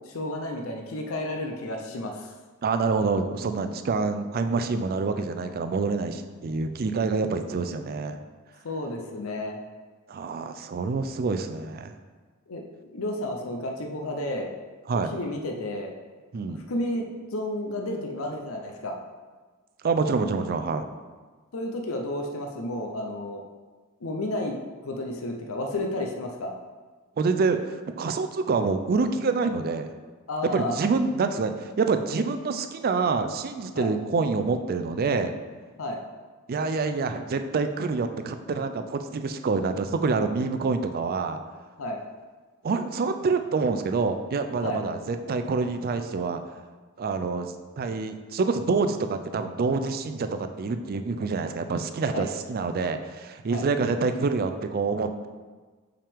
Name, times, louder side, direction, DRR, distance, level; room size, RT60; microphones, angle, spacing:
voice 1, 0.1-2.3 8.6-9.6 12.5-14.5 14.9-15.9 16.4-18.9 21.5-23.4 24.0-24.6 24.8-26.5 30.3-30.8 33.7-33.9 35.8-36.0 41.8-42.0 44.6-44.8 52.1-52.3 53.5-53.6, left 1 dB, 70° left, 2 dB, 0.6 m, -32 dB
voice 2, 2.6-8.2 10.1-12.0 14.9-15.1 16.3-16.6 19.8-20.8 27.2-29.9 30.4-35.3 36.5-41.4 42.6-46.4 47.0-55.3, right 4 dB, 45° right, 8 dB, 0.4 m, -27 dB
5.5 x 5.0 x 3.5 m, 1.4 s
head